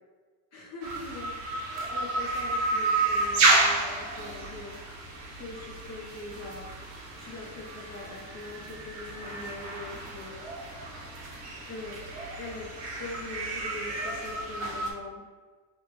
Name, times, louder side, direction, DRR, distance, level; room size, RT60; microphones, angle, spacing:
voice 1, 0.5-1.3 1.9-4.7 5.3-6.7 7.2-10.4 11.7-12.0 12.4-12.7 13.0-15.2, left 2 dB, 40° left, -3 dB, 0.5 m, -42 dB
sound 1, 0.8-14.9, right 2 dB, 75° right, 1.0 m, -31 dB
3.4 x 2.1 x 2.8 m, 1.4 s
cardioid pair, 135°, 44 cm